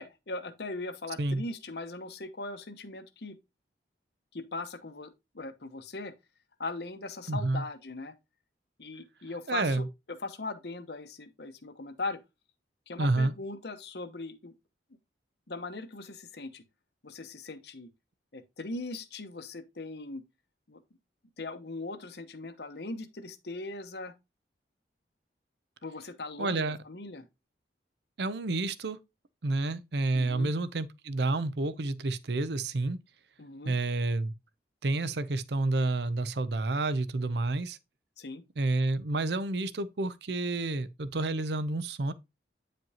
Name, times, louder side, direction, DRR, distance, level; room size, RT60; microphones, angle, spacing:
voice 1, 0.0-3.4 4.3-6.1 6.6-8.1 8.8-9.9 10.2-12.2 12.9-14.5 15.5-16.6 17.0-17.9 18.3-20.2 20.7-20.8 21.4-24.1 25.8-27.2 30.1-30.5 33.4-33.8 38.2-38.4, left 3 dB, 65° left, 1.0 m, -39 dB
voice 2, 7.3-7.6 9.5-9.9 13.0-13.3 26.4-26.8 28.2-29.0 29.4-33.0 33.6-34.3 34.8-37.8 38.6-42.1, right 2 dB, 70° right, 0.6 m, -29 dB
9.2 x 5.2 x 2.8 m
head